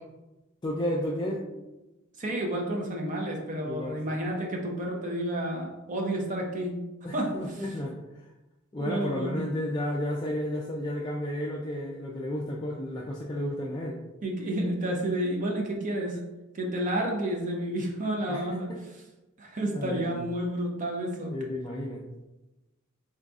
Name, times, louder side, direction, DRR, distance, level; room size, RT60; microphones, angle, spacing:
voice 1, 0.6-1.4 3.6-4.2 7.0-8.2 8.7-14.0 18.3-18.4 18.7-18.8 19.7-20.2 21.3-22.1, left 1 dB, 20° left, -3 dB, 0.4 m, -32 dB
voice 2, 2.2-6.8 7.1-7.3 8.8-9.5 14.2-16.2 16.5-18.7 19.4-21.3, right 1 dB, 40° right, 1 dB, 0.7 m, -30 dB
3.9 x 3.9 x 2.4 m, 1.0 s
head